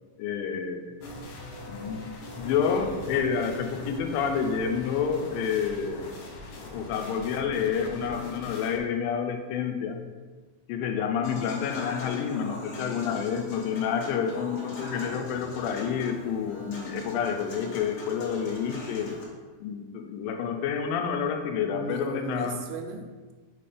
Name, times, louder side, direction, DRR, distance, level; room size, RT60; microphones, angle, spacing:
voice 1, 0.2-0.8 1.7-2.1 2.3-6.2 6.6-10.0 10.7-19.2 19.6-22.6, left 7 dB, 90° left, 5 dB, 2.3 m, -29 dB
sound 1, 1.0-8.8, left 1 dB, 70° left, 2.0 m, -41 dB
Human voice / Acoustic guitar / Piano, 11.2-19.2, left 2 dB, 55° left, 1.9 m, -41 dB
voice 2, 21.7-23.3, right 2 dB, 80° right, 4 dB, 2.0 m, -36 dB
5.3 x 4.2 x 4.9 m, 1.4 s
omnidirectional pair, 4.0 m